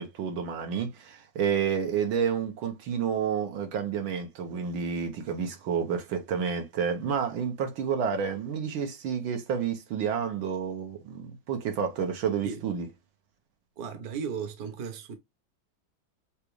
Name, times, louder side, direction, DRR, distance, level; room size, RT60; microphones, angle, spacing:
voice 1, 0.0-12.9, right 7 dB, 80° right, 1.8 m, -30 dB
voice 2, 13.8-15.2, right 6 dB, 55° right, 1.3 m, -35 dB
6.6 x 2.4 x 3.1 m
omnidirectional pair, 2.2 m